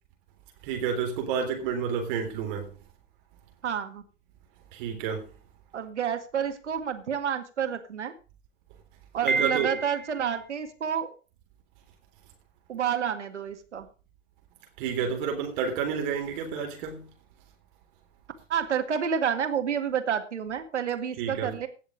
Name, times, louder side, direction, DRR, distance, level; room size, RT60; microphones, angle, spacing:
voice 1, 0.6-2.7 4.7-5.3 9.2-9.8 14.8-17.1 21.2-21.5, right 7 dB, 45° right, 3.6 m, -30 dB
voice 2, 3.6-4.0 5.7-8.1 9.1-11.1 12.7-13.9 18.5-21.7, right 8 dB, 70° right, 2.0 m, -29 dB
Piano, 9.3-10.3, right 3 dB, ahead, 0.7 m, -29 dB
17.0 x 6.6 x 5.1 m
figure-of-eight pair, 105°, 36 cm